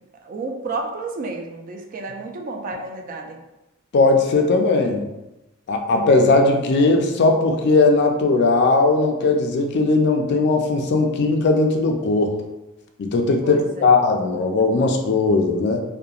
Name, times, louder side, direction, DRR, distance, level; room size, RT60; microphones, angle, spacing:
voice 1, 0.2-3.4 13.4-13.9, right 3 dB, 40° right, 2 dB, 0.3 m, -31 dB
voice 2, 3.9-5.1 5.7-12.3 13.0-15.8, left 3 dB, 55° left, 3 dB, 0.3 m, -18 dB
2.8 x 2.2 x 2.3 m, 0.97 s
head